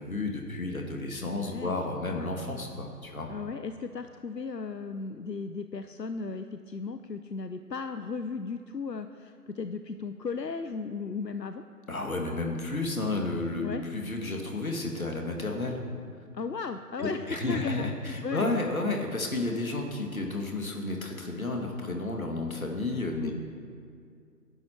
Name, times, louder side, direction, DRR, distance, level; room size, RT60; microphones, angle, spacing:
voice 1, 0.0-3.3 11.9-15.8 17.0-23.3, left 2 dB, 60° left, 2 dB, 2.4 m, -32 dB
voice 2, 1.3-1.8 3.3-11.6 13.6-13.8 16.3-18.5 23.2-23.3, left 4 dB, 85° left, 9 dB, 0.8 m, -36 dB
18.5 x 10.5 x 4.5 m, 2.3 s
figure-of-eight pair, 155°, 48 cm